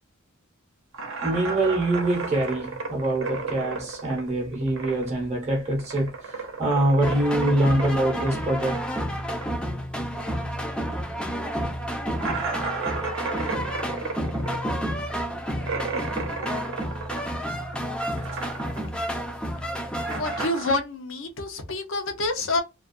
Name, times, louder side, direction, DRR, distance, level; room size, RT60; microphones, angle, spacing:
sound 1, 0.9-5.2 5.5-10.5 10.8-10.9 11.3-11.4 12.2-17.7 18.0-19.0 19.2-20.7, right 4 dB, 70° right, 0.7 m, -34 dB
voice 1, 1.2-8.8, right 1 dB, 30° right, 0.7 m, -24 dB
sound 2, 7.0-20.5, equal, 5° left, 0.4 m, -30 dB
voice 2, 20.1-22.6, left 2 dB, 65° left, 0.7 m, -27 dB
2.3 x 2.2 x 2.5 m
head